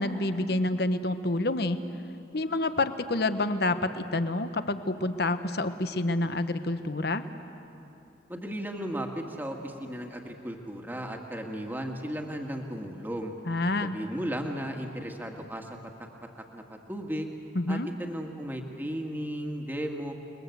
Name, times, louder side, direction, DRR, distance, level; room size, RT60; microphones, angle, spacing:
voice 1, 0.0-1.8 2.3-7.2 13.5-14.0 17.5-17.9, left 2 dB, 55° left, 10 dB, 1.1 m, -28 dB
voice 2, 8.3-13.3 13.8-15.7 16.5-17.3 17.7-20.1, equal, 10° right, 2 dB, 1.9 m, -35 dB
29.5 x 21.5 x 8.1 m, 2.9 s
head